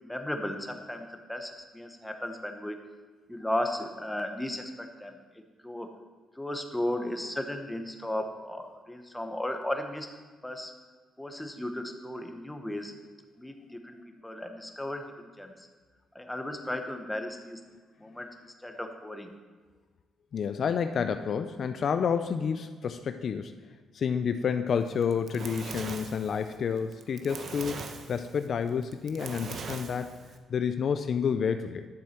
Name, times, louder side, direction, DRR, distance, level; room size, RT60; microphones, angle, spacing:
voice 1, 0.0-2.8 3.3-5.2 5.6-5.9 6.4-10.1 10.4-10.7 11.2-12.9 13.4-15.7 16.1-17.6 18.0-18.3 18.6-19.3, left 1 dB, 5° left, 5 dB, 1.0 m, -35 dB
voice 2, 20.3-23.5 23.9-30.2 30.5-31.9, left 6 dB, 55° left, 9 dB, 0.4 m, -29 dB
Fire, 24.9-30.4, right 4 dB, 55° right, 0.9 m, -41 dB
10.5 x 7.2 x 4.4 m, 1.4 s
cardioid pair, 95°, 0 cm